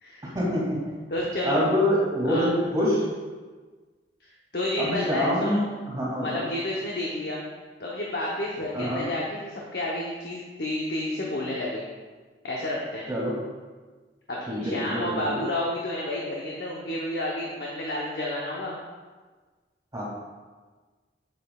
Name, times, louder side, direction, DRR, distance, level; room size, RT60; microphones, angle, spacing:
voice 1, 0.3-0.8 1.4-3.0 4.8-5.6 5.9-6.4 8.7-9.1 13.1-13.3 14.5-15.3 19.9-20.0, equal, 20° right, -6 dB, 2.2 m, -25 dB
voice 2, 1.1-1.6 2.2-2.5 4.2-5.7 6.2-7.4 7.8-11.8 12.4-13.1 14.3-18.8, left 1 dB, 60° left, -3 dB, 0.8 m, -30 dB
7.7 x 7.6 x 2.3 m, 1.4 s
head